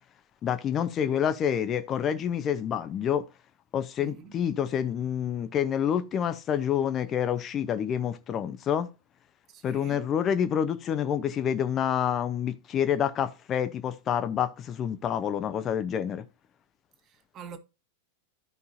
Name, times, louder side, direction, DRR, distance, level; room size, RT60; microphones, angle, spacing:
voice 1, 0.4-3.2 3.7-8.9 9.6-16.2, left 9 dB, 30° left, 0.8 m, -28 dB
voice 2, 4.0-4.3 9.5-10.0 17.0-17.6, right 7 dB, 30° right, 1.6 m, -45 dB
14.0 x 5.3 x 2.7 m
figure-of-eight pair, 90°, 0 cm